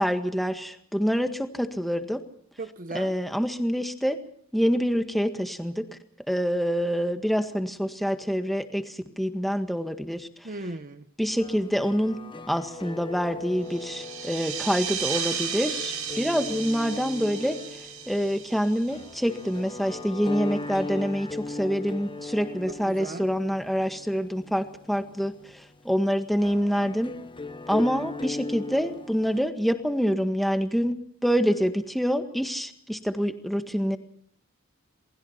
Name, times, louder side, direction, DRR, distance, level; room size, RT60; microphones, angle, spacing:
voice 1, 0.0-2.2 2.9-4.2 4.5-5.9 6.3-10.3 11.2-12.2 12.5-17.6 18.1-27.1 27.7-34.0, equal, ahead, 7 dB, 1.7 m, -26 dB
voice 2, 2.6-3.2 10.4-11.1 22.7-23.3, right 2 dB, 40° right, 8 dB, 1.1 m, -37 dB
sound 1, 11.4-29.4, left 3 dB, 25° left, 1.1 m, -39 dB
sound 2, 13.7-19.8, right 7 dB, 90° right, 7.2 m, -34 dB
28.0 x 20.0 x 5.8 m, 0.63 s
head